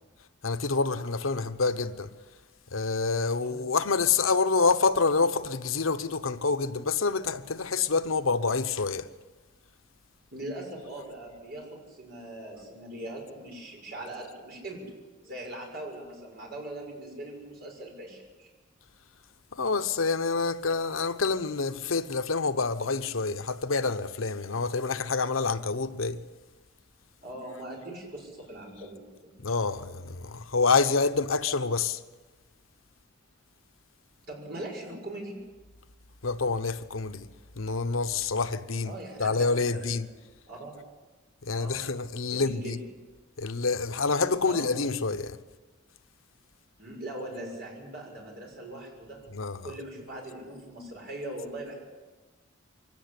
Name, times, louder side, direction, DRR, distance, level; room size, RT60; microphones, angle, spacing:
voice 1, 0.4-2.1 2.7-9.1 19.5-26.2 29.4-32.0 36.2-37.3 37.6-40.1 41.4-42.8 43.4-45.4 49.3-49.8, left 4 dB, 85° left, 1.0 m, -27 dB
voice 2, 10.3-15.0 15.2-18.5 27.2-29.3 34.3-35.4 38.8-40.0 40.5-40.8 41.5-41.8 42.2-42.8 44.4-44.7 46.8-49.2 49.6-51.8, right 1 dB, 50° right, 6.7 m, -41 dB
24.0 x 17.5 x 8.3 m
head